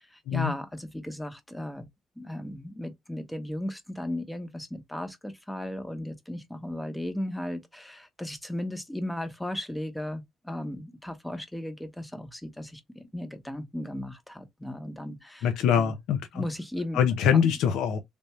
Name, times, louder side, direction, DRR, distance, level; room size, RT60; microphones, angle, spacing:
voice 1, 0.0-1.9 2.2-15.5 15.8-16.0 16.3-17.0 17.3-17.5, left 1 dB, 10° left, 0.9 m, -36 dB
voice 2, 15.4-16.4 16.9-18.0, left 8 dB, 90° left, 0.6 m, -24 dB
3.4 x 2.5 x 3.0 m
cardioid pair, 90°, 0 cm